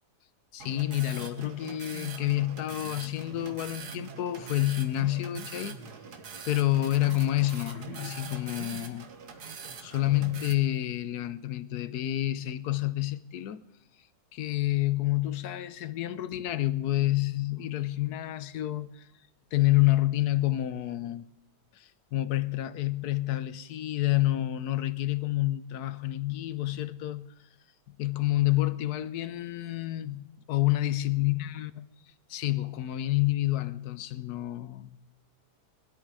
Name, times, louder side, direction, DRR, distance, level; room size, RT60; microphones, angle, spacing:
voice 1, 0.5-5.8 6.5-9.1 9.8-13.6 14.3-19.1 19.5-21.2 21.7-27.3 28.0-31.8 32.3-35.0, left 15 dB, 70° left, 1.2 m, -28 dB
sound 1, 0.6-10.5, right 5 dB, 65° right, 1.8 m, -43 dB
20.0 x 12.5 x 4.8 m
omnidirectional pair, 1.8 m